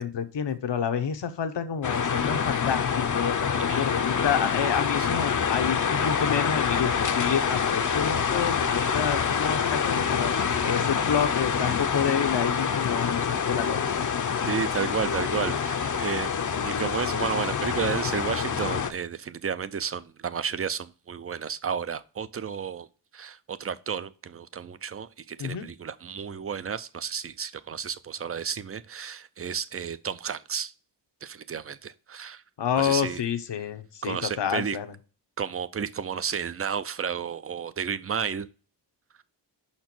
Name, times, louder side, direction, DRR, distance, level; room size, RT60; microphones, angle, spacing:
voice 1, 0.0-10.3 10.6-14.1 16.5-16.9 25.4-25.6 32.6-34.9, left 8 dB, 80° left, 0.8 m, -29 dB
sound 1, 1.8-18.9, left 6 dB, 45° left, 0.6 m, -26 dB
voice 2, 3.5-3.9 5.0-5.1 14.5-16.4 16.6-22.9 23.1-30.7 31.2-32.4 32.8-33.2 34.0-34.8 35.4-38.5, right 7 dB, 35° right, 0.4 m, -32 dB
5.9 x 4.3 x 5.9 m
wide cardioid pair, 125°, 42 cm